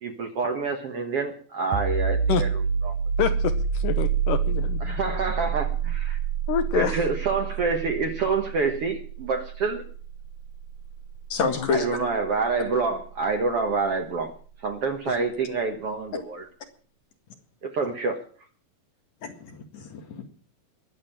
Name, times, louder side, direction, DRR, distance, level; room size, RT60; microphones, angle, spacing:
voice 1, 0.0-2.5 2.8-2.9 4.8-6.2 6.7-9.8 11.7-14.3 14.6-16.5 17.6-18.2, right 4 dB, 55° right, 4 dB, 1.8 m, -27 dB
sound 1, 1.7-13.2, right 6 dB, 70° right, 2.2 m, -28 dB
voice 2, 3.2-4.8 6.5-7.1 11.6-11.7 15.1-15.2, left 9 dB, 70° left, 10 dB, 2.4 m, -27 dB
voice 3, 11.3-11.9 19.2-20.2, left 5 dB, 55° left, 5 dB, 3.0 m, -28 dB
21.5 x 7.4 x 7.4 m, 0.44 s
omnidirectional pair, 4.2 m